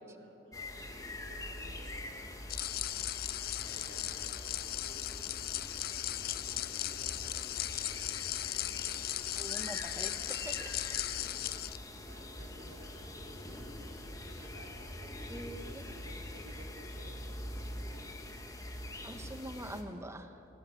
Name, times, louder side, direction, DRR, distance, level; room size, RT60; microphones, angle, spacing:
voice 1, 0.0-9.4 10.6-18.2, right 1 dB, 85° right, -2 dB, 2.9 m, -57 dB
sound 1, 0.5-19.8, left 1 dB, 20° left, 1.7 m, -44 dB
sound 2, 2.5-11.8, left 14 dB, 55° left, 0.4 m, -37 dB
voice 2, 9.4-10.8 15.3-15.8 19.0-20.4, right 1 dB, 15° right, 7 dB, 1.2 m, -44 dB
21.0 x 16.5 x 9.2 m, 2.8 s
head